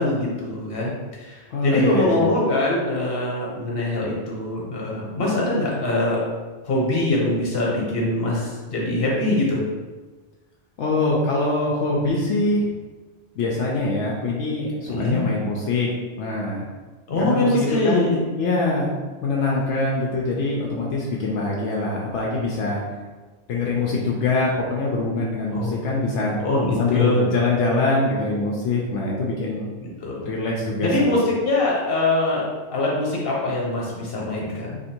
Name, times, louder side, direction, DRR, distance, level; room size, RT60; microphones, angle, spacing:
voice 1, 0.0-6.2 6.7-9.6 14.9-15.2 17.1-18.2 25.5-25.7 26.4-27.3 29.8-30.3 30.8-32.4 32.7-34.8, left 2 dB, 55° left, -3 dB, 1.2 m, -23 dB
voice 2, 1.5-2.3 10.8-12.7 13.4-15.9 16.2-16.7 17.2-18.9 19.2-22.8 23.5-26.4 26.8-29.7 30.3-31.2, left 2 dB, 80° left, -3 dB, 0.9 m, -23 dB
2.9 x 2.6 x 4.3 m, 1.3 s
omnidirectional pair, 1.2 m